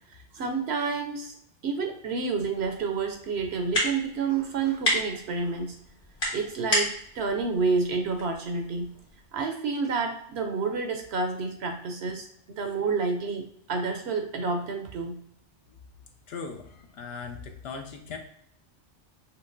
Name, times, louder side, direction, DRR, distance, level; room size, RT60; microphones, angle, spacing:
voice 1, 0.1-1.3 1.6-5.8 6.3-8.9 9.3-15.1, right 4 dB, 70° right, 5 dB, 0.8 m, -29 dB
sound 1, 2.5-9.3, left 1 dB, 50° left, 1.8 m, -33 dB
voice 2, 16.3-18.2, left 5 dB, 70° left, 4 dB, 0.8 m, -39 dB
5.8 x 2.7 x 2.5 m, 0.68 s
omnidirectional pair, 1.2 m